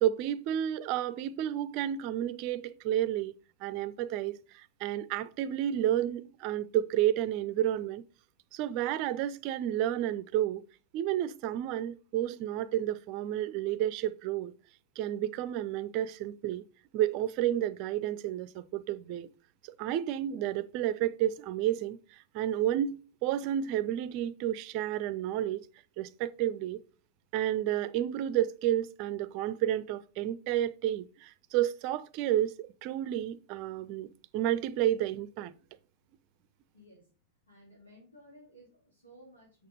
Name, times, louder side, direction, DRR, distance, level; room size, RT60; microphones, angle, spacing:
voice 1, 0.0-3.3 3.6-8.0 8.5-10.6 10.9-14.5 15.0-16.6 16.9-19.3 19.6-22.0 22.3-25.7 26.0-26.8 27.3-35.5, right 12 dB, 45° right, 0.5 m, -31 dB
voice 2, 36.7-37.1 37.4-39.7, equal, 80° left, 3.4 m, -56 dB
6.6 x 6.5 x 3.9 m
figure-of-eight pair, 90°, 0 cm